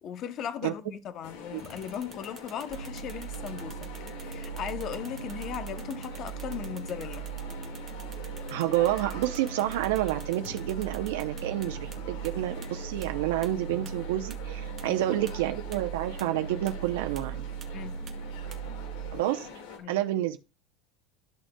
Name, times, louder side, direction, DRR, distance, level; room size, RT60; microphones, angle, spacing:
voice 1, 0.0-3.9 4.2-7.3 14.8-15.0 17.7-18.0 19.8-19.9, left 8 dB, 35° left, 0.7 m, -37 dB
sound 1, 1.2-19.8, left 5 dB, 75° left, 1.8 m, -45 dB
sound 2, 1.6-12.0 12.2-12.3 12.6-12.7 13.0-13.1 13.4-13.5 13.9-14.0 14.3-14.4 14.8-14.9 15.3-15.4 15.7-15.8 16.2-16.3 16.7-16.8 17.2-17.3 17.6-17.7 18.1-18.2 18.5-18.6, right 7 dB, 25° right, 1.0 m, -49 dB
sound 3, 2.7-19.1, right 8 dB, 40° right, 1.4 m, -39 dB
voice 2, 8.5-17.4 19.1-19.5 19.9-20.4, right 14 dB, 90° right, 0.6 m, -29 dB
12.5 x 6.3 x 2.2 m
cardioid pair, 155°, 0 cm